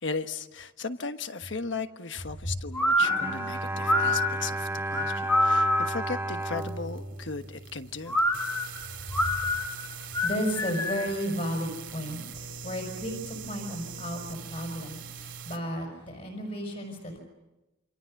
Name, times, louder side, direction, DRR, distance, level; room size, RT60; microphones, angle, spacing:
voice 1, 0.0-8.2, left 4 dB, 70° left, 9 dB, 1.3 m, -36 dB
sound 1, 2.7-6.1 8.1-11.2, left 1 dB, 10° left, 2.3 m, -26 dB
Bowed string instrument, 3.0-8.3, right 2 dB, 10° right, 1.6 m, -34 dB
sound 2, 6.5-15.6, right 6 dB, 70° right, 2.8 m, -43 dB
voice 2, 9.0-17.2, equal, 40° left, 1 dB, 5.4 m, -34 dB
28.5 x 25.5 x 6.6 m, 1.0 s
head